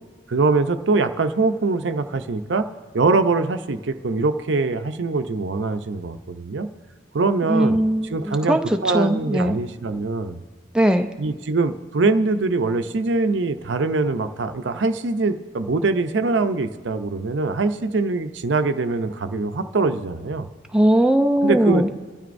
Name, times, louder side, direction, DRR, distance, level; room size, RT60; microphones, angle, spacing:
voice 1, 0.3-2.7 2.9-6.7 7.1-7.8 8.1-10.4 11.2-20.5 21.4-22.0, right 3 dB, 75° right, 9 dB, 0.6 m, -23 dB
voice 2, 7.5-9.6 10.7-11.1 20.7-21.9, right 1 dB, 5° right, 5 dB, 0.5 m, -19 dB
29.0 x 12.5 x 2.6 m, 1.4 s
head